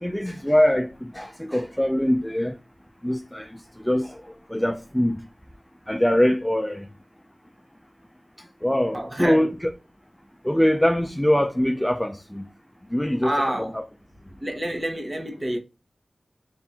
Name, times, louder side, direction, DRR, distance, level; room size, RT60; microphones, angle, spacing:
voice 1, 0.0-2.6 3.0-5.2 5.9-6.9 8.4-9.7 10.4-12.5 12.9-13.3 13.6-13.8, equal, 10° left, 0.4 m, -23 dB
voice 2, 8.9-9.4 13.2-13.7 14.4-15.6, right 1 dB, 30° right, 1.0 m, -27 dB
3.5 x 2.5 x 4.0 m
wide cardioid pair, 60°, 0 cm